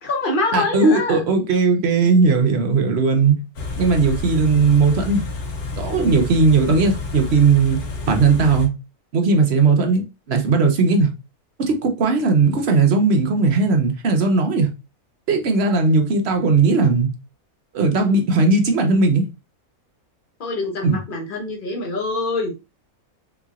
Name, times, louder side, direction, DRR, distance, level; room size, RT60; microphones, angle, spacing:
voice 1, 0.0-1.2 20.4-22.5, left 3 dB, 40° left, 1.0 m, -25 dB
voice 2, 0.5-3.4 3.8-5.2 5.7-7.8 8.1-8.7 9.1-11.1 11.6-14.7 15.3-17.1 17.7-19.2 20.8-21.0, right 4 dB, 55° right, 0.9 m, -17 dB
Car / Idling, 3.5-8.7, left 3 dB, 85° left, 1.5 m, -29 dB
3.9 x 2.9 x 2.4 m
omnidirectional pair, 1.6 m